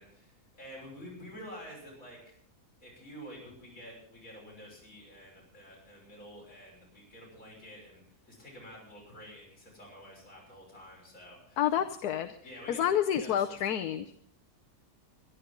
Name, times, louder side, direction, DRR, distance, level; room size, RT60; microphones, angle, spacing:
voice 1, 0.0-2.4 2.8-11.6 12.4-13.8, equal, 60° left, -4 dB, 6.7 m, -49 dB
voice 2, 11.6-12.4 12.7-14.2, left 10 dB, 80° left, 7 dB, 1.3 m, -29 dB
23.5 x 11.5 x 3.9 m, 0.62 s
omnidirectional pair, 1.6 m